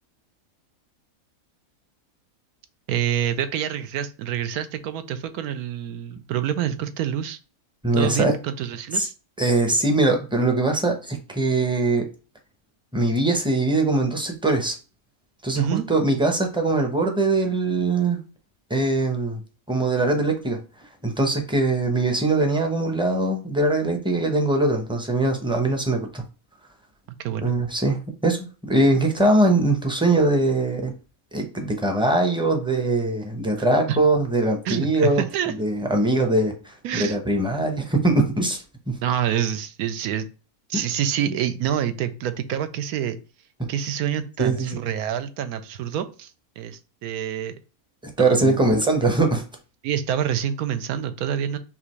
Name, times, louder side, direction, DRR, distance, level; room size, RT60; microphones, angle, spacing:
voice 1, 2.9-7.4 8.0-9.1 15.6-15.9 27.2-27.6 33.9-34.1 34.6-35.5 36.8-37.2 39.0-40.3 40.7-43.2 43.7-46.3 46.6-47.6 48.2-48.6 49.8-51.6, right 9 dB, 85° right, 10 dB, 1.1 m, -27 dB
voice 2, 7.8-8.3 8.9-9.1 9.4-12.0 12.9-14.7 15.4-18.2 18.7-19.4 19.7-20.6 21.0-26.2 27.4-30.9 31.3-35.2 35.6-38.9 44.4-44.8 48.2-49.4, right 2 dB, 5° right, 3 dB, 0.5 m, -22 dB
5.9 x 2.5 x 3.0 m, 0.35 s
omnidirectional pair, 1.5 m